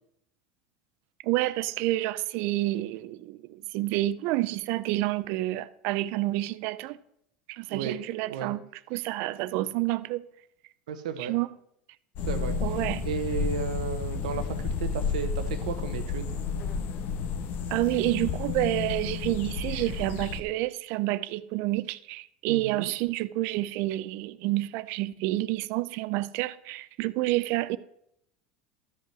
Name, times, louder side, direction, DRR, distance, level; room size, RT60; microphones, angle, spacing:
voice 1, 1.2-7.0 7.5-8.6 8.9-10.2 11.2-11.5 12.6-13.1 17.7-27.8, right 17 dB, 60° right, 0.5 m, -29 dB
voice 2, 10.9-11.3 12.3-12.6 13.0-16.3 22.5-22.9, right 7 dB, 85° right, 0.9 m, -33 dB
sound 1, 12.2-20.4, left 6 dB, 55° left, 1.1 m, -31 dB
13.0 x 5.5 x 6.0 m
supercardioid pair, 110°, 4 cm